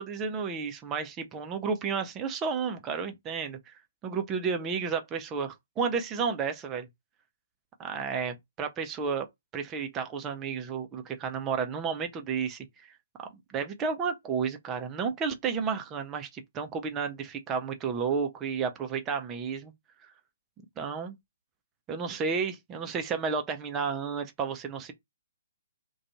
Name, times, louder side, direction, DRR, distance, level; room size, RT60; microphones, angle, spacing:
voice 1, 0.0-3.7 4.0-6.9 7.8-13.0 13.5-19.7 20.0-20.1 20.8-21.2 21.9-24.9, right 5 dB, 20° right, 0.5 m, -32 dB
2.5 x 2.3 x 2.7 m
figure-of-eight pair, 125°, 0 cm